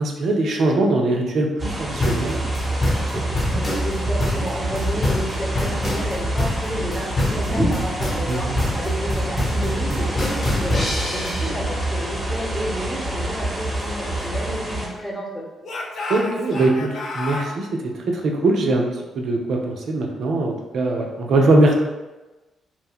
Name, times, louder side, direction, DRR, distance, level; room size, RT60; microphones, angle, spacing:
voice 1, 0.0-2.4 8.3-8.6 11.4-11.5 16.1-18.9 19.1-21.7, right 2 dB, 60° right, 1 dB, 0.5 m, -21 dB
sound 1, 1.6-14.9, right 1 dB, 25° right, 0.9 m, -26 dB
sound 2, 2.0-11.5, left 2 dB, 40° left, 1.1 m, -25 dB
voice 2, 3.6-8.5 8.7-10.8 11.1-15.4, equal, 20° left, -3 dB, 1.0 m, -31 dB
Speech / Shout, 13.6-15.2 15.6-17.5, left 2 dB, 60° left, 0.4 m, -32 dB
2.4 x 2.1 x 3.5 m, 1.1 s
hypercardioid pair, 40°, 0 cm